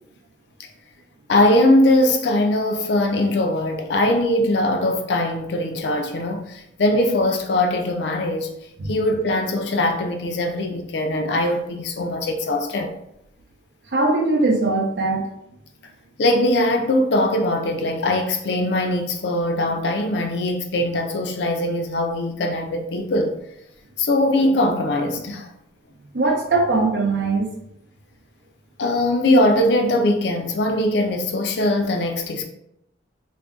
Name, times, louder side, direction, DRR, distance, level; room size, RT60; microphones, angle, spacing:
voice 1, 1.3-8.5 8.9-12.9 16.2-23.3 24.0-25.5 28.8-32.4, left 1 dB, 65° left, 0.4 m, -21 dB
voice 2, 13.9-15.3 26.1-27.5, right 3 dB, 65° right, 0.5 m, -20 dB
2.5 x 2.2 x 3.5 m
head